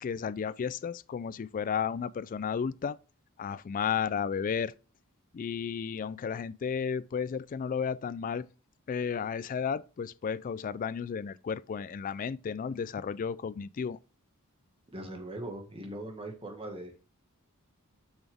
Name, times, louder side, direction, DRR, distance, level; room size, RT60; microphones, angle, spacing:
voice 1, 0.0-3.0 3.4-4.7 5.3-8.5 8.9-14.0, left 6 dB, 40° left, 0.3 m, -33 dB
voice 2, 14.9-17.1, right 1 dB, 25° right, 1.7 m, -41 dB
7.1 x 6.1 x 3.4 m
head